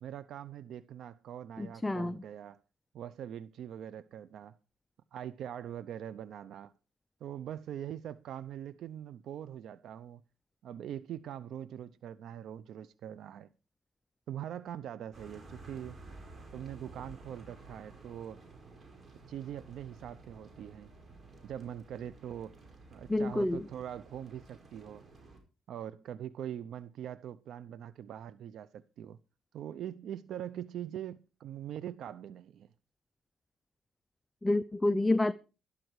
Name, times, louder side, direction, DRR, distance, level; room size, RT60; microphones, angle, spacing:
voice 1, 0.0-2.6 2.9-4.6 5.1-6.7 7.2-10.2 10.6-13.5 14.3-16.0 16.5-18.4 19.3-20.9 21.4-22.6 22.9-25.0 25.7-29.2 29.5-32.7, right 10 dB, 75° right, 0.6 m, -42 dB
voice 2, 1.6-2.1 23.1-23.6 34.4-35.3, left 2 dB, 15° left, 0.5 m, -28 dB
sound 1, 15.1-25.4, right 2 dB, 35° right, 5.1 m, -53 dB
12.5 x 12.5 x 4.7 m
cardioid pair, 90°, 0 cm